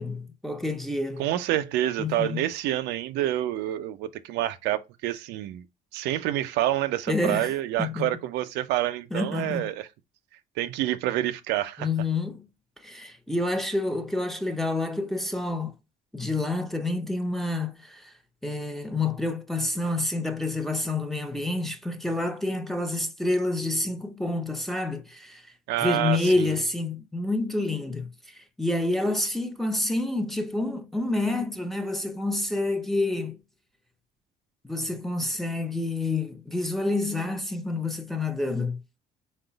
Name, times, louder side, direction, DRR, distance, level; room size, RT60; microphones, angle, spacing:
voice 1, 0.0-1.3 2.0-2.4 7.1-7.5 7.8-8.1 9.1-9.7 11.8-12.5 12.8-15.7 16.1-18.1 18.4-25.5 25.8-33.4 34.6-38.8, left 2 dB, ahead, 0.6 m, -28 dB
voice 2, 1.2-5.6 5.9-9.9 10.6-11.9 25.7-26.6, right 13 dB, 90° right, 0.5 m, -28 dB
4.7 x 2.2 x 3.8 m
cardioid pair, 110°, 17 cm